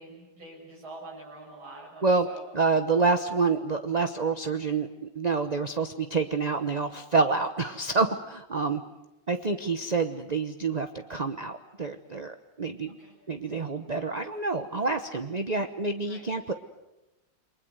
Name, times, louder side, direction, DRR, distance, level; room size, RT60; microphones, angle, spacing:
voice 1, 0.0-2.4 12.9-13.2 16.0-16.2, right 2 dB, 75° right, -4 dB, 7.6 m, -46 dB
voice 2, 2.5-8.8 9.3-13.0 13.3-16.5, right 4 dB, 35° right, 7 dB, 0.7 m, -27 dB
29.5 x 23.5 x 7.9 m, 1.0 s
omnidirectional pair, 2.3 m